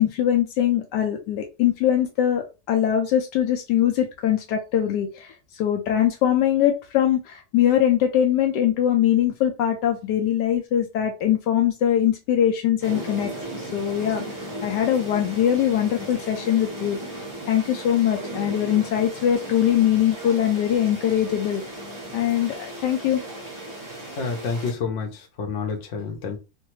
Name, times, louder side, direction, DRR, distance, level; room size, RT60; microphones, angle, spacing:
voice 1, 0.0-13.3 13.7-17.0 17.5-21.7 22.1-23.2, left 10 dB, 75° left, 1.1 m, -22 dB
sound 1, 12.8-24.7, right 1 dB, 20° right, 0.6 m, -36 dB
voice 2, 24.2-26.4, left 5 dB, 55° left, 1.0 m, -29 dB
3.1 x 2.2 x 3.0 m
omnidirectional pair, 1.9 m